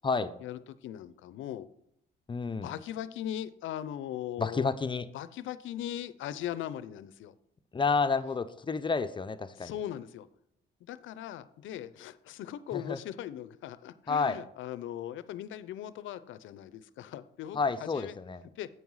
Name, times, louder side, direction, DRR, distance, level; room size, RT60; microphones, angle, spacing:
voice 1, 0.4-1.7 2.6-4.7 5.0-7.3 9.5-10.3 10.8-18.2 18.6-18.7, left 11 dB, 75° left, 15 dB, 0.5 m, -39 dB
voice 2, 2.3-2.7 4.4-5.1 7.7-9.7 12.7-13.0 14.1-14.4 17.5-18.4, left 4 dB, 25° left, 11 dB, 0.5 m, -30 dB
8.0 x 5.5 x 4.7 m, 0.74 s
cardioid pair, 90°, 20 cm